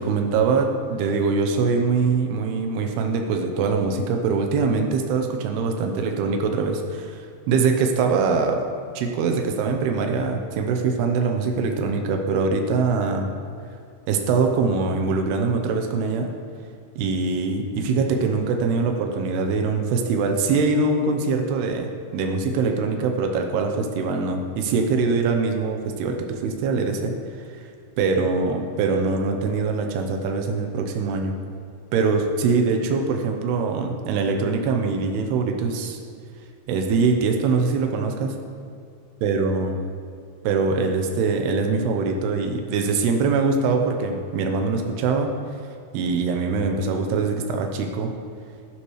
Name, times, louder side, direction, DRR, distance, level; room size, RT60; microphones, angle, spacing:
voice 1, 0.0-8.6 8.9-13.3 14.1-16.3 17.0-27.4 28.0-31.3 31.9-36.0 36.7-38.3 39.2-39.8 40.4-45.3 45.9-48.1, right 4 dB, 80° right, 3 dB, 2.4 m, -23 dB
12.5 x 11.5 x 3.2 m, 2.4 s
omnidirectional pair, 5.7 m